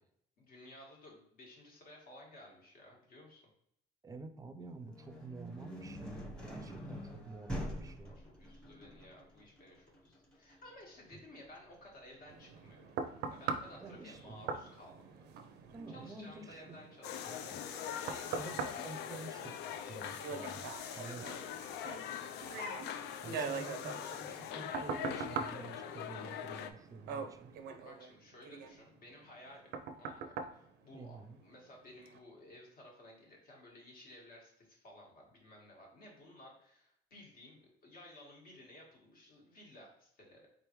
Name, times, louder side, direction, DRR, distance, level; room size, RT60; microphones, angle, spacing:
voice 1, 0.4-3.4 8.0-12.8 13.3-15.6 15.9-19.2 21.0-21.3 23.5-23.7 27.1-27.2 27.8-40.5, left 1 dB, 60° left, -1 dB, 1.7 m, -56 dB
voice 2, 4.0-8.2 11.1-11.2 13.8-14.5 15.7-16.8 17.2-17.4 18.3-21.3 23.2-27.5 30.9-31.4, right 3 dB, 20° right, 8 dB, 0.5 m, -49 dB
sound 1, 4.6-14.4, equal, 5° left, 1.0 m, -47 dB
sound 2, 12.3-31.6 32.1-32.2, right 5 dB, 80° right, 0.5 m, -43 dB
sound 3, 17.0-26.7, left 9 dB, 80° left, 0.4 m, -42 dB
4.0 x 3.5 x 3.0 m, 0.73 s
cardioid pair, 110°, 17 cm